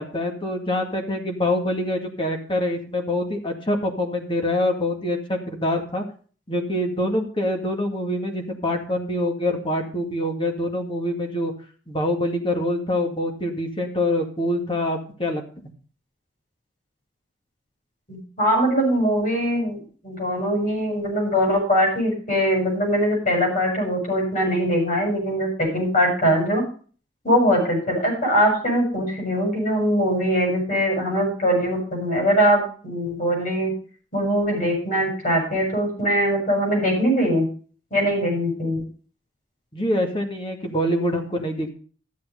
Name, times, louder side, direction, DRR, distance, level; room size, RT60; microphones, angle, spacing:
voice 1, 0.0-6.0 6.5-11.5 11.9-15.4 39.7-41.7, left 1 dB, 30° left, 3 dB, 2.1 m, -25 dB
voice 2, 18.1-19.8 20.0-26.6 27.2-33.7 34.1-37.5 37.9-38.8, equal, 45° left, -1 dB, 7.3 m, -22 dB
13.0 x 7.8 x 5.2 m, 0.41 s
head